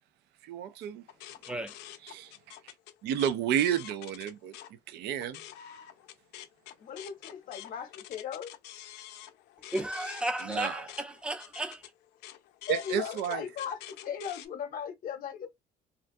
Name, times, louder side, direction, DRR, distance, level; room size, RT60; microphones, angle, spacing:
voice 1, 0.4-1.0 2.0-2.3 3.0-4.5 4.9-5.4 10.4-10.8 12.7-13.4, right 9 dB, 75° right, 0.4 m, -31 dB
sound 1, 1.1-4.7 5.1-14.5, left 12 dB, 85° left, 0.4 m, -48 dB
voice 2, 6.8-8.5 12.7-15.5, left 8 dB, 55° left, 0.8 m, -37 dB
voice 3, 9.7-11.8, right 1 dB, 5° right, 0.5 m, -34 dB
2.4 x 2.2 x 2.6 m
cardioid pair, 110°, 17 cm